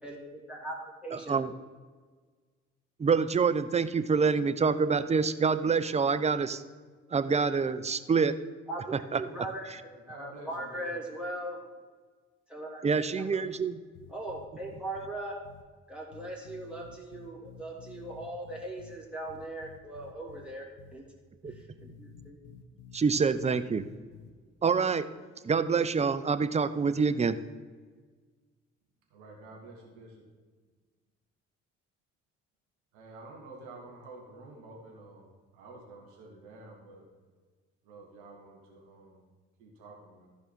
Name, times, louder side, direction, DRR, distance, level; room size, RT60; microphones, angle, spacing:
voice 1, 0.0-1.5 8.7-11.6 12.5-13.4 14.1-15.4 15.9-21.1 21.5-22.4, right 1 dB, 5° right, -3 dB, 2.6 m, -40 dB
voice 2, 1.1-1.5 3.0-6.6 7.1-8.3 9.1-9.2 12.8-13.8 21.4-21.5 22.9-23.8 24.6-25.1 25.4-27.4, right 5 dB, 20° right, 12 dB, 0.5 m, -26 dB
voice 3, 9.9-11.0 29.1-30.1 32.9-37.1 37.8-39.2 39.6-40.3, right 2 dB, 70° right, -1 dB, 1.7 m, -49 dB
sound 1, 13.9-15.1 15.4-15.6 16.1-19.0 19.3-20.5 20.8-21.0 21.4-24.3, left 7 dB, 75° left, 0.8 m, -51 dB
14.0 x 5.1 x 4.4 m, 1.4 s
figure-of-eight pair, 45°, 36 cm